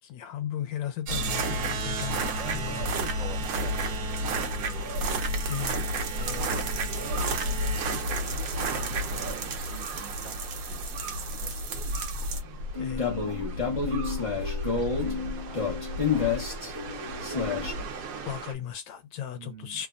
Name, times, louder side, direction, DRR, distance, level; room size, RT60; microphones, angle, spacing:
voice 1, 0.0-2.9 5.5-5.8 12.8-13.1 18.2-19.9, left 10 dB, 80° left, 1.4 m, -36 dB
sound 1, 1.1-18.5, right 1 dB, 60° right, 1.0 m, -31 dB
voice 2, 2.2-4.9 6.1-6.6 7.2-7.6 8.2-11.6 12.3-12.7 13.2-14.0 14.7-17.2 19.3-19.8, right 3 dB, 25° right, 1.2 m, -47 dB
sound 2, 12.7-17.7, left 5 dB, 40° left, 0.4 m, -30 dB
3.3 x 2.1 x 2.5 m
omnidirectional pair, 2.0 m